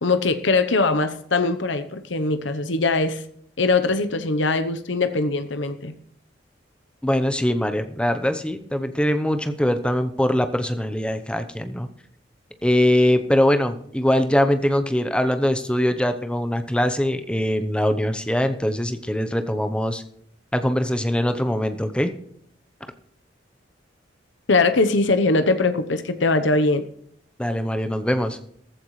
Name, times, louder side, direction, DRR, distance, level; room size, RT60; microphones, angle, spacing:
voice 1, 0.0-3.2 3.6-5.9 24.5-26.8, left 3 dB, 75° left, 10 dB, 0.9 m, -21 dB
voice 2, 7.0-11.9 12.6-20.0 20.5-22.1 27.4-28.4, left 1 dB, 5° left, 8 dB, 0.8 m, -22 dB
14.5 x 14.5 x 3.2 m, 0.68 s
head